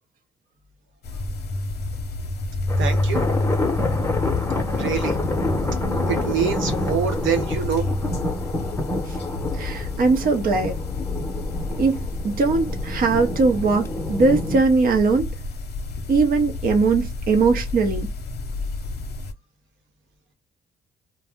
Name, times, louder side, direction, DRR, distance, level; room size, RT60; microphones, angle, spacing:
sound 1, 1.0-19.3, left 2 dB, 55° left, 0.7 m, -29 dB
sound 2, 2.7-14.6, left 2 dB, 10° left, 0.8 m, -28 dB
voice 1, 2.8-3.3 4.7-5.1 6.1-7.9, right 8 dB, 75° right, 0.9 m, -25 dB
voice 2, 9.5-10.8 11.8-12.0 12.2-15.3 16.1-18.1, right 4 dB, 45° right, 0.7 m, -20 dB
2.5 x 2.0 x 3.5 m
cardioid pair, 90°, 20 cm